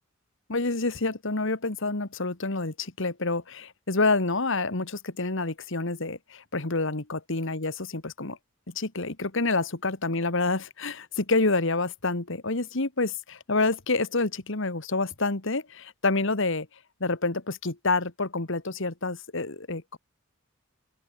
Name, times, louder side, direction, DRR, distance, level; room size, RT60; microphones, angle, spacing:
voice 1, 0.5-8.4 8.7-16.7 17.0-20.0, left 3 dB, 65° left, 2.0 m, -28 dB
open air
head